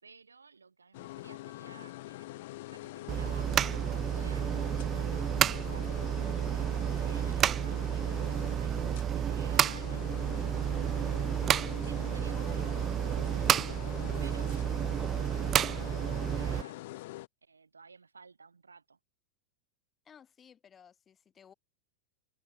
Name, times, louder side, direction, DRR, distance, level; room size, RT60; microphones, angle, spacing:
voice 1, 0.0-8.2 8.5-11.2 11.8-13.9 14.2-14.7 15.1-16.8 17.4-19.0, right 4 dB, 75° right, 3.7 m, -55 dB
sound 1, 0.9-17.3, left 18 dB, 50° left, 1.0 m, -44 dB
sound 2, 3.1-16.6, right 10 dB, 25° right, 0.4 m, -30 dB
voice 2, 12.3-12.9 20.1-21.5, left 8 dB, 20° left, 7.0 m, -56 dB
figure-of-eight pair, 90°, 0 cm